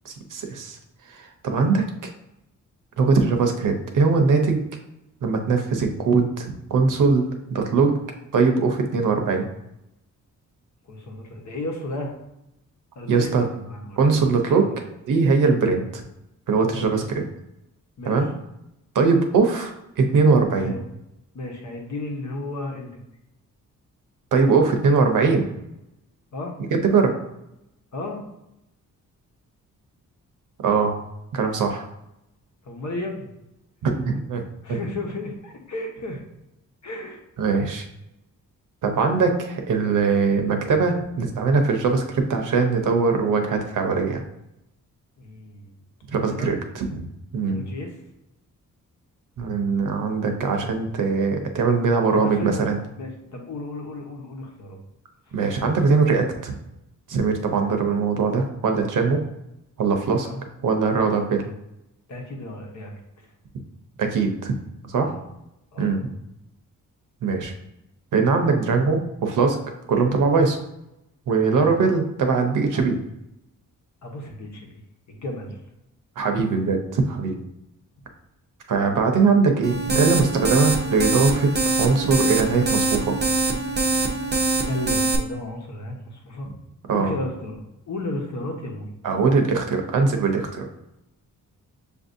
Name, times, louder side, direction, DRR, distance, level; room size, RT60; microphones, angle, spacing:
voice 1, 0.0-0.8 1.1-1.9 3.0-4.6 5.2-7.2 7.5-8.0 8.3-9.5 13.1-13.5 14.0-14.7 15.1-16.0 16.5-17.2 18.1-18.3 18.9-20.7 24.3-25.5 26.7-27.1 30.6-31.0 31.3-31.8 33.8-34.4 34.7-34.8 37.4-37.8 38.8-44.2 46.1-47.1 47.3-47.6 49.4-52.8 55.3-56.5 57.1-59.2 59.8-60.3 60.6-61.4 64.0-64.5 64.9-65.1 65.8-66.0 67.2-67.5 68.1-69.6 69.9-70.6 71.3-73.0 76.2-77.4 78.7-83.1 86.9-87.1 89.0-90.7, right 4 dB, 70° right, 4 dB, 0.8 m, -21 dB
voice 2, 10.9-12.1 13.0-14.1 14.5-14.7 16.7-16.9 18.0-18.2 20.6-20.8 21.3-23.0 26.3-26.6 27.9-28.2 32.6-33.3 34.6-36.2 36.8-37.2 45.2-45.7 46.3-46.5 47.5-48.0 52.1-54.8 60.2-60.4 62.1-62.9 63.2-63.3 65.0-65.2 65.7-65.9 71.5-71.8 72.7-72.8 74.0-74.8 75.1-75.6 84.6-86.5 86.9-88.9, left 2 dB, 60° left, 1 dB, 1.1 m, -33 dB
sound 1, 79.6-85.2, right 3 dB, 30° right, 0.6 m, -23 dB
6.6 x 2.6 x 2.6 m, 0.87 s
cardioid pair, 105°, 32 cm